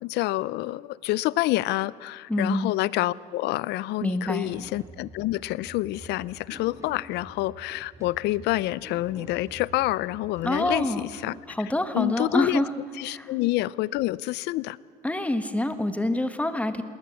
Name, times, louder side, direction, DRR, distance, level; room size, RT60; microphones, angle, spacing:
voice 1, 0.0-11.3 11.9-12.6 13.0-14.8, left 17 dB, 85° left, 21 dB, 0.5 m, -27 dB
voice 2, 2.3-2.7 4.0-4.5 10.4-11.0 11.5-12.7 13.1-13.3 15.0-16.8, left 1 dB, 10° left, 10 dB, 1.5 m, -26 dB
sound 1, 4.4-11.5, right 2 dB, 15° right, 2.1 m, -47 dB
20.0 x 19.0 x 8.4 m, 2.1 s
cardioid pair, 110°, 17 cm